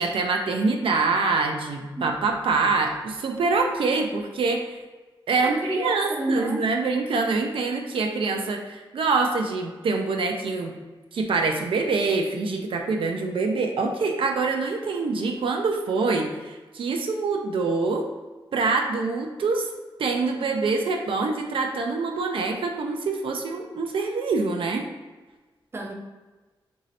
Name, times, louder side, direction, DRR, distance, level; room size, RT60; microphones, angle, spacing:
voice 1, 0.0-4.7 5.3-10.7 11.1-18.1 18.5-19.7 20.0-24.8, right 4 dB, 85° right, 3 dB, 0.4 m, -25 dB
voice 2, 5.4-6.7 25.7-25.9, right 1 dB, 30° right, 2 dB, 0.4 m, -29 dB
3.0 x 2.7 x 4.0 m, 1.3 s
wide cardioid pair, 105°, 9 cm